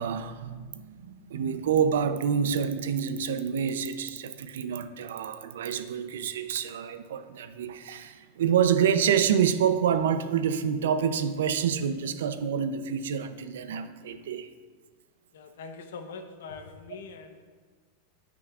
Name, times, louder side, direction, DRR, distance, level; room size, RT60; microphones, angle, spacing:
voice 1, 0.0-14.5, right 8 dB, 90° right, 10 dB, 0.5 m, -27 dB
voice 2, 15.3-17.4, left 4 dB, 85° left, 7 dB, 0.9 m, -43 dB
15.5 x 6.1 x 2.4 m, 1.5 s
supercardioid pair, 160°, 0 cm